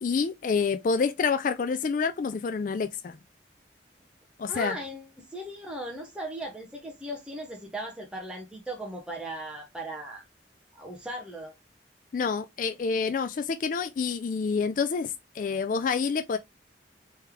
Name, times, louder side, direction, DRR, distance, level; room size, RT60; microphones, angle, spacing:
voice 1, 0.0-3.2 4.4-4.8 12.1-16.4, left 5 dB, 50° left, 0.3 m, -28 dB
voice 2, 4.5-10.2 10.7-11.5, right 1 dB, 5° right, 0.8 m, -37 dB
3.3 x 3.1 x 3.4 m
head